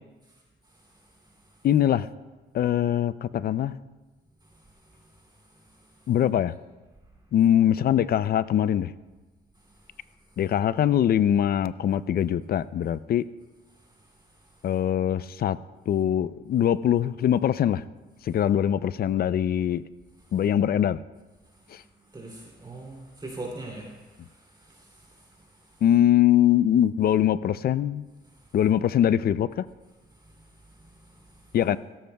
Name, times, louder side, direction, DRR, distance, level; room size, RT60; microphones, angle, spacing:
voice 1, 1.6-2.1 2.5-3.7 6.1-6.6 7.3-8.9 10.4-13.2 14.6-15.6 15.9-17.8 18.2-19.8 20.3-21.0 21.7-21.8 25.8-28.1 28.5-29.7 31.5-31.8, left 10 dB, 50° left, 17 dB, 0.4 m, -22 dB
voice 2, 22.1-23.9 24.2-25.1 25.4-25.5, right 2 dB, 20° right, -2 dB, 2.8 m, -40 dB
16.5 x 13.5 x 2.3 m, 1.2 s
cardioid pair, 90°, 20 cm